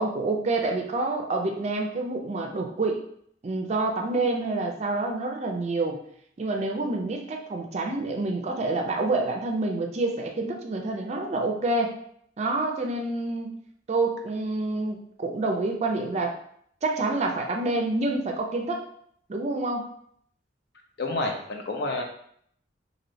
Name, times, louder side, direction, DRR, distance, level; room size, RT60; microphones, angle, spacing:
voice 1, 0.0-3.0 3.4-6.0 6.4-12.0 12.4-13.6 13.9-16.4 16.8-18.8 19.3-19.9, right 2 dB, 40° right, 3 dB, 0.4 m, -27 dB
voice 2, 21.0-22.0, left 2 dB, 65° left, 2 dB, 0.6 m, -29 dB
3.1 x 2.7 x 2.6 m, 0.66 s
head